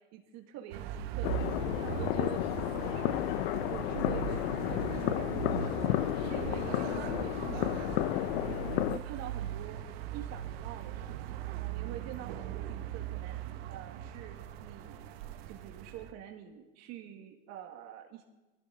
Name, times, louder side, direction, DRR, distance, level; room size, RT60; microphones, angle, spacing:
voice 1, 0.1-3.4 3.7-15.2 15.5-18.2, right 10 dB, 60° right, 4 dB, 2.0 m, -47 dB
sound 1, 0.7-16.1, right 11 dB, 80° right, 1.3 m, -39 dB
sound 2, 1.2-9.0, left 15 dB, 85° left, 0.6 m, -32 dB
19.0 x 15.5 x 4.0 m, 1.1 s
supercardioid pair, 115°, 30 cm